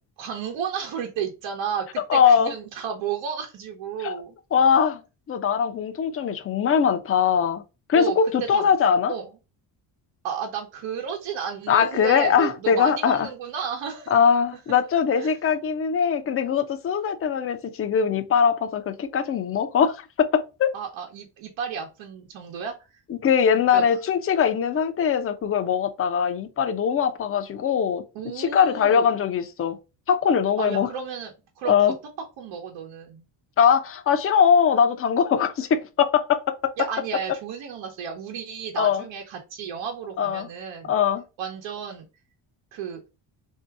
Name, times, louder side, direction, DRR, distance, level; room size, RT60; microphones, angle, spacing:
voice 1, 0.2-4.3 7.9-8.2 8.5-8.8 9.1-9.3 10.2-14.1 15.1-15.4 20.7-22.7 23.7-23.8 28.1-29.1 30.6-31.7 32.4-33.2 36.8-40.9 41.4-42.1 42.7-43.0, right 7 dB, 80° right, 1.0 m, -32 dB
voice 2, 2.1-2.5 4.0-4.2 4.5-5.0 5.3-7.6 7.9-9.1 11.7-13.3 14.1-20.7 23.1-28.0 28.4-29.8 30.1-30.9 31.7-31.9 33.6-36.4 38.8-39.0 40.2-40.5 40.9-41.2, left 7 dB, 30° left, 0.5 m, -21 dB
3.5 x 2.7 x 4.6 m
cardioid pair, 135°, 45 cm